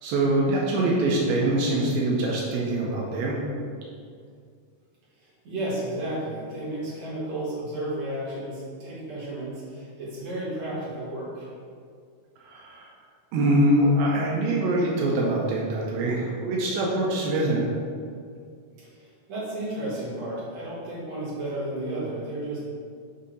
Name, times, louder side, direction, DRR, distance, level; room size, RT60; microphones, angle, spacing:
voice 1, 0.0-3.4 12.5-12.9 13.3-17.7, right 1 dB, 85° right, -3 dB, 2.5 m, -24 dB
voice 2, 5.4-11.5 18.9-22.6, right 1 dB, 55° right, -8 dB, 2.5 m, -32 dB
6.8 x 2.7 x 5.2 m, 2.2 s
omnidirectional pair, 4.1 m